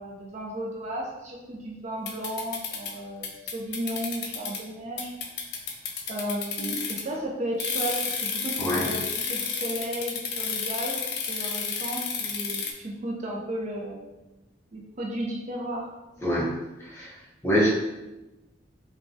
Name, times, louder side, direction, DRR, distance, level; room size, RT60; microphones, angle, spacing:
voice 1, 0.0-5.1 6.1-11.0 11.3-14.0 14.7-15.9 17.0-17.1 17.5-17.7, right 1 dB, 40° right, -2 dB, 0.4 m, -34 dB
sound 1, 2.1-2.9 3.2-4.6 5.0-7.1 7.6-12.7, left 6 dB, 60° left, 0.4 m, -31 dB
voice 2, 16.2-17.1 17.4-17.7, equal, 15° left, -6 dB, 0.6 m, -25 dB
3.2 x 2.2 x 2.5 m, 1.0 s
head